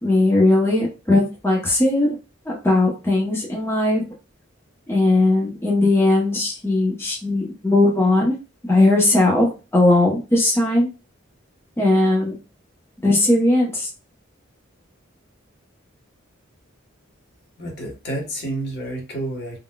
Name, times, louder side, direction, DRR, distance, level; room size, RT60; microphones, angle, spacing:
voice 1, 0.0-2.2 2.5-4.1 4.9-8.3 8.6-10.9 11.8-12.3 13.0-13.9, left 2 dB, 10° left, -3 dB, 0.7 m, -18 dB
voice 2, 17.6-19.6, right 1 dB, 55° left, -1 dB, 1.0 m, -29 dB
3.8 x 2.1 x 2.2 m, 0.30 s
head